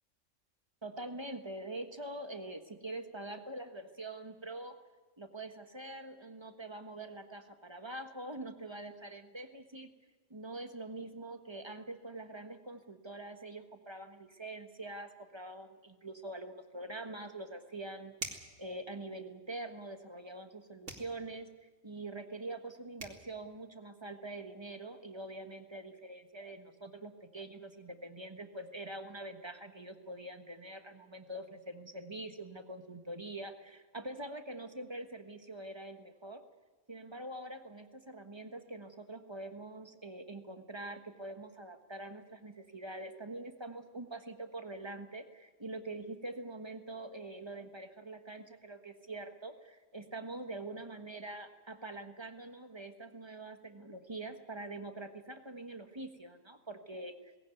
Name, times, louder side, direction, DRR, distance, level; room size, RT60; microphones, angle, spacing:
voice 1, 0.8-4.8 5.2-9.9 10.3-36.4 36.9-57.3, right 2 dB, 20° right, 7 dB, 1.4 m, -44 dB
sound 1, 18.2-18.6 20.8-21.1 22.7-22.8 23.0-23.2, right 2 dB, 65° right, 2.9 m, -42 dB
19.5 x 17.0 x 9.3 m, 1.4 s
omnidirectional pair, 1.3 m